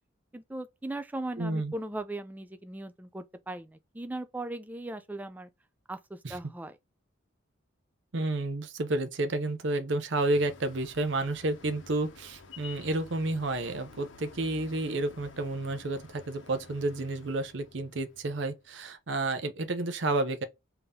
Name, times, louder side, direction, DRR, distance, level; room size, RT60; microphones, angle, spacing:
voice 1, 0.3-5.5 5.9-6.8, right 1 dB, 10° right, 0.3 m, -38 dB
voice 2, 1.4-1.7 6.2-6.4 8.1-20.4, right 2 dB, 65° right, 0.6 m, -31 dB
sound 1, 10.3-18.6, left 4 dB, 70° left, 0.7 m, -51 dB
3.6 x 2.8 x 3.5 m
head